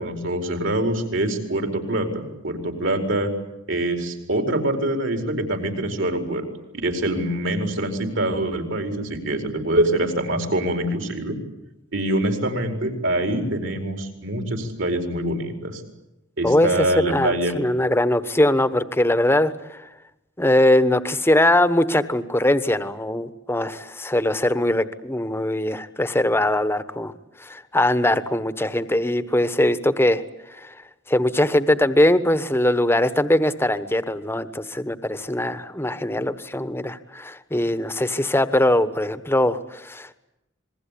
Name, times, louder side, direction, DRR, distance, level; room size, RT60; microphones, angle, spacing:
voice 1, 0.0-3.3 3.7-6.5 6.7-11.4 11.9-15.8 16.4-17.5, right 1 dB, 65° right, 5 dB, 4.7 m, -24 dB
voice 2, 16.4-19.9 20.4-27.1 27.4-30.2 30.5-30.7 31.1-40.1, left 1 dB, 10° left, 12 dB, 1.2 m, -21 dB
27.5 x 21.5 x 8.6 m, 0.89 s
head